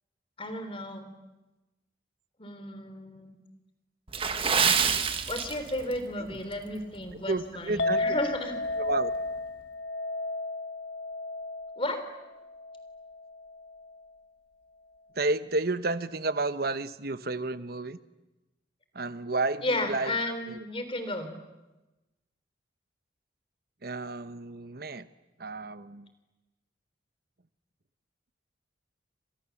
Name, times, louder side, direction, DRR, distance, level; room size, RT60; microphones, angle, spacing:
voice 1, 0.4-1.1 2.4-3.4 5.3-8.6 11.8-12.0 19.6-21.3, left 1 dB, 30° left, 9 dB, 3.5 m, -33 dB
Water / Splash splatter, 4.1-6.0 6.3-6.5 7.1-7.3 7.8-7.9, right 6 dB, 30° right, 1.6 m, -26 dB
voice 2, 7.3-8.0 8.8-9.1 15.1-18.0 18.9-20.2 20.5-20.6 23.8-25.1 25.4-26.1, right 2 dB, 55° right, 13 dB, 1.1 m, -31 dB
Chink clink, 7.8-14.1, left 2 dB, 70° left, 1.5 m, -34 dB
29.5 x 26.0 x 7.2 m, 1.1 s
head